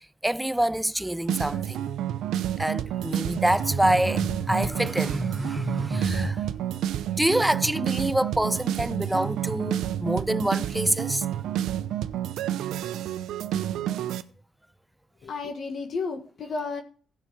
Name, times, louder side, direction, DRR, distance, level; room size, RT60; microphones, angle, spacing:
voice 1, 0.0-1.8 2.6-6.5 7.2-11.3, right 1 dB, 5° right, 0.4 m, -26 dB
sound 1, 1.3-14.2, right 11 dB, 80° right, 0.7 m, -29 dB
voice 2, 15.2-16.8, left 4 dB, 55° left, 1.7 m, -32 dB
15.0 x 5.8 x 4.9 m
cardioid pair, 90°, 0 cm